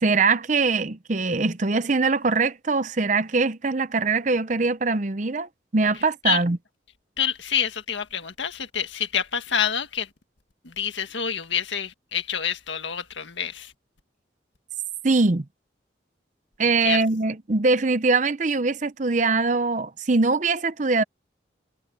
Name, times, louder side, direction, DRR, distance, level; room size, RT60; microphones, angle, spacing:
voice 1, 0.0-6.6 15.0-15.4 16.6-21.0, right 3 dB, 40° right, 0.7 m, -22 dB
voice 2, 7.2-10.1 10.6-13.7 16.8-17.0, left 8 dB, 80° left, 1.8 m, -27 dB
head